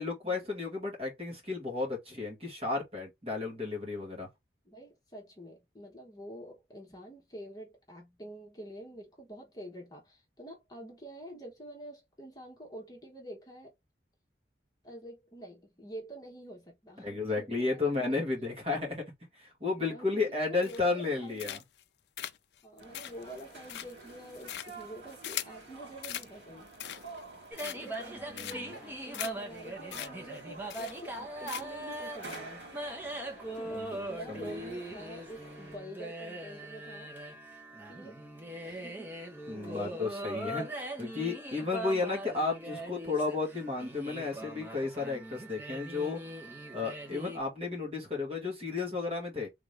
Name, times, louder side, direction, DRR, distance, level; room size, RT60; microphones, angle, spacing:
voice 1, 0.0-4.3 17.0-19.0 19.3-21.6 28.4-28.7 33.7-34.5 39.5-46.2 46.7-49.5, left 3 dB, 35° right, 1.7 m, -33 dB
voice 2, 3.4-3.7 4.6-13.7 14.8-18.2 18.7-18.8 19.8-21.6 22.6-26.7 27.6-32.7 33.5-37.4 37.8-38.2 38.6-39.1 39.5-40.1, right 1 dB, 20° left, 1.2 m, -47 dB
sound 1, 20.6-21.0 21.4-21.8 22.2-25.6 26.0-26.3 26.7-27.2 27.6-28.0 28.4-28.8 29.1-29.3 29.6-29.7 29.9-30.1 30.4-30.5 30.7-31.2 31.5-31.8 32.2-32.4, left 12 dB, 70° left, 0.4 m, -40 dB
sound 2, 22.8-35.8, right 3 dB, 80° right, 2.2 m, -49 dB
sound 3, 27.5-47.4, right 1 dB, 10° right, 0.9 m, -41 dB
3.6 x 2.9 x 3.3 m
head